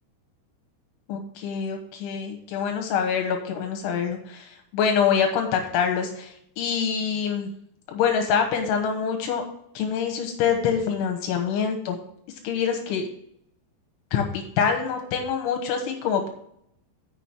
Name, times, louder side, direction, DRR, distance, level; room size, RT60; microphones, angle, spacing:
voice 1, 1.1-7.5 7.9-9.4 9.8-12.0 12.5-13.1 14.1-16.3, left 7 dB, 85° left, 4 dB, 3.6 m, -25 dB
7.0 x 6.7 x 6.0 m, 0.71 s
omnidirectional pair, 5.3 m